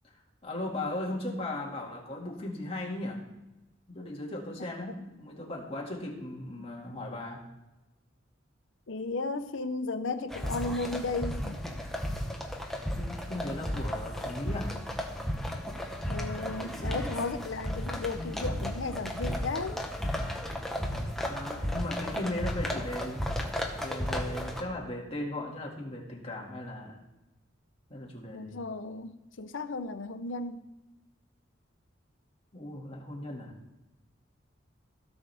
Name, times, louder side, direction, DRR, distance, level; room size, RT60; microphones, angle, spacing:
voice 1, 0.4-3.2 3.9-7.4 13.0-14.8 21.3-23.2 23.8-27.0 27.9-28.6 32.5-33.5, left 1 dB, 30° left, -2 dB, 2.2 m, -37 dB
voice 2, 8.9-11.6 16.1-19.8 28.3-30.6, left 3 dB, 75° left, 11 dB, 0.7 m, -34 dB
sound 1, 10.3-24.6, equal, ahead, 1.1 m, -34 dB
16.5 x 6.2 x 3.5 m, 1.0 s
head